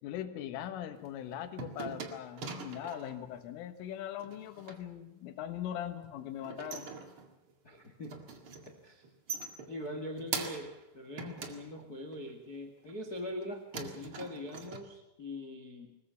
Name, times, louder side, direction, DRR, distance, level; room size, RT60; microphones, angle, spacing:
voice 1, 0.0-6.9, left 11 dB, 85° left, 9 dB, 4.0 m, -40 dB
sound 1, 0.9-3.2 4.2-4.8 6.2-7.5 7.8-8.8 9.0-10.8 11.2-12.3 12.8-13.4 13.7-14.8, right 4 dB, 50° right, 1.6 m, -43 dB
voice 2, 7.6-8.2 8.7-9.0 9.7-16.0, left 1 dB, 65° left, 5 dB, 0.9 m, -42 dB
22.5 x 20.0 x 7.0 m, 0.90 s
omnidirectional pair, 5.6 m